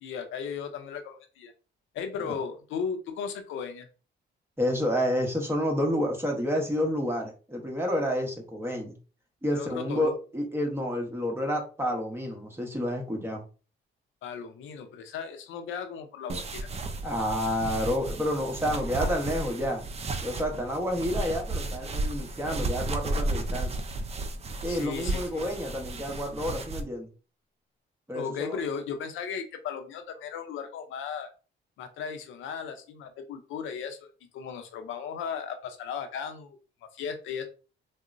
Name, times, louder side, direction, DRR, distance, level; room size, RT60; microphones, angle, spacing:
voice 1, 0.0-1.5 1.9-3.9 9.5-10.1 14.2-16.7 24.7-25.5 28.1-31.3 31.8-37.4, left 6 dB, 85° left, 7 dB, 0.5 m, -36 dB
voice 2, 4.6-9.0 9.4-13.4 17.0-19.8 20.2-23.8 24.6-27.1 28.1-28.6, equal, 10° right, 1 dB, 1.0 m, -29 dB
sound 1, 16.3-26.8, right 2 dB, 30° right, 0.5 m, -33 dB
3.7 x 2.0 x 2.5 m, 0.35 s
cardioid pair, 90°, 20 cm